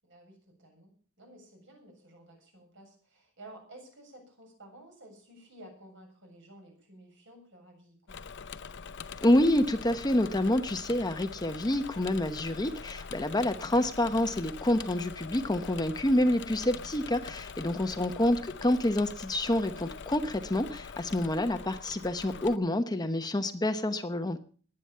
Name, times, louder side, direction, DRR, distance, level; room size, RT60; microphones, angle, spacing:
voice 1, 0.0-8.2 17.8-18.0, right 1 dB, 60° right, 2 dB, 7.4 m, -53 dB
Engine / Mechanisms, 8.1-22.6, left 5 dB, 55° left, 0.7 m, -44 dB
voice 2, 9.2-24.4, left 1 dB, 20° left, 8 dB, 0.9 m, -28 dB
21.0 x 9.0 x 5.6 m, 0.42 s
head